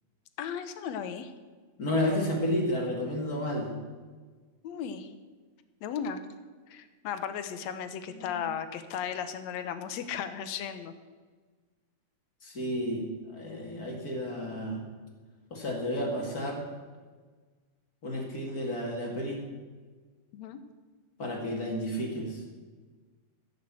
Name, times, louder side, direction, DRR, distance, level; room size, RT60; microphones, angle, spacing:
voice 1, 0.4-1.3 4.6-5.1 5.8-6.2 6.7-10.9 20.3-20.6, left 8 dB, 75° left, 10 dB, 2.0 m, -35 dB
voice 2, 1.8-3.7 8.1-8.4 12.4-14.8 15.5-16.6 18.0-19.4 21.2-22.4, left 1 dB, 35° left, 0 dB, 2.3 m, -31 dB
15.5 x 6.6 x 7.5 m, 1.4 s
omnidirectional pair, 3.3 m